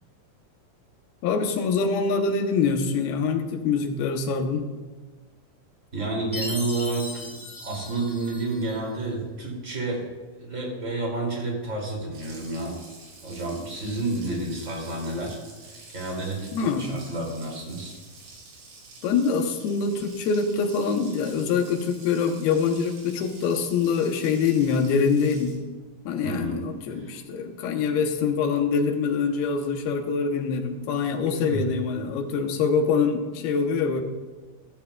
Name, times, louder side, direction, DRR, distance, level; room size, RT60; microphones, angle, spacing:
voice 1, 1.2-4.7 16.5-16.9 19.0-25.6 26.1-34.0, left 5 dB, 80° left, 5 dB, 2.8 m, -24 dB
voice 2, 5.9-10.1 10.4-12.8 13.2-17.9 26.2-26.7 27.0-27.1 31.3-31.6, right 2 dB, 25° right, -2 dB, 2.3 m, -30 dB
Chime, 6.3-8.8, left 2 dB, 15° left, 1.1 m, -37 dB
Water tap faucet, 12.1-25.5, right 3 dB, 75° right, 4.8 m, -48 dB
14.5 x 13.5 x 2.3 m, 1.3 s
omnidirectional pair, 4.5 m